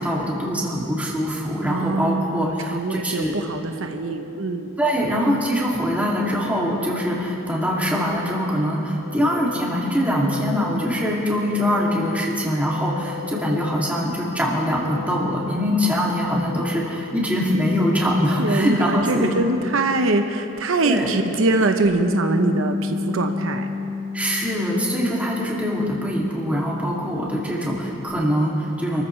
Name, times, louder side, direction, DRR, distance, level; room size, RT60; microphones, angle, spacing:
voice 1, 0.0-3.4 4.8-19.3 20.8-21.1 24.1-29.0, equal, 5° right, -5 dB, 2.5 m, -23 dB
voice 2, 1.6-4.7 18.4-23.7, right 2 dB, 85° right, 6 dB, 0.9 m, -23 dB
sound 1, 2.7-22.1, left 10 dB, 20° left, 1.5 m, -41 dB
Bass guitar, 21.9-28.1, left 3 dB, 50° right, 2.2 m, -31 dB
27.5 x 14.5 x 3.3 m, 2.8 s
head